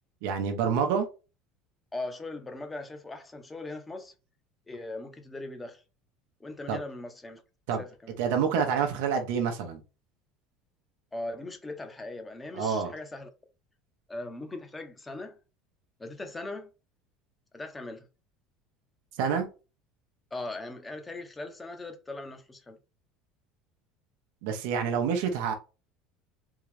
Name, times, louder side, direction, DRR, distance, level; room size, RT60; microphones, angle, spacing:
voice 1, 0.2-1.1 6.7-6.8 7.7-7.8 8.2-9.8 12.5-12.9 19.2-19.5 24.4-25.5, right 6 dB, 75° right, 0.8 m, -27 dB
voice 2, 1.9-4.1 4.7-5.8 6.4-7.4 7.8-8.1 11.1-13.3 14.1-15.4 16.0-16.7 17.5-18.1 20.3-22.8, left 2 dB, 15° left, 0.9 m, -39 dB
3.6 x 2.4 x 3.3 m
supercardioid pair, 90°, 0 cm